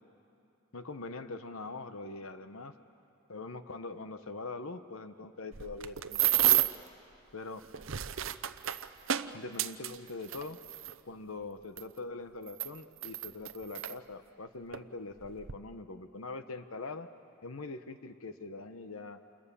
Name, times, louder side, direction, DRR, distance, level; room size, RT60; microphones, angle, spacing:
voice 1, 0.7-2.7 3.3-6.6 7.3-7.6 9.3-10.6 11.1-17.1 17.4-19.2, left 3 dB, 75° left, 9 dB, 1.1 m, -43 dB
sound 1, 5.5-6.9 7.6-10.9 11.8-11.9 12.5-13.9 14.7-14.9 15.2-15.5, right 13 dB, 65° right, 0.7 m, -31 dB
28.5 x 28.5 x 7.0 m, 2.6 s
head